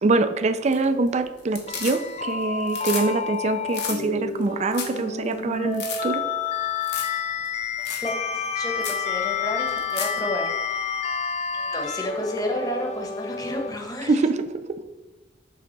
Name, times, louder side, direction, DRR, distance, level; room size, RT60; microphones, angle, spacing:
voice 1, 0.0-6.2 14.1-14.8, right 3 dB, 40° right, 10 dB, 0.4 m, -24 dB
sound 1, 0.5-1.1 1.4-2.3 2.6-3.1 3.3-3.4 3.7-4.0 4.4-4.5 4.7-5.0 5.3-5.4 5.7-6.0 6.8-7.2 7.4-7.5 7.8-8.1 8.4-8.5 8.8-9.0 9.7-10.2 12.4-12.5, left 6 dB, 70° left, 1.4 m, -33 dB
sound 2, 1.7-13.7, left 6 dB, 40° left, 0.5 m, -29 dB
voice 2, 7.8-11.0 11.5-14.2, left 1 dB, 20° left, 2 dB, 1.2 m, -31 dB
6.9 x 3.7 x 6.0 m, 1.1 s
head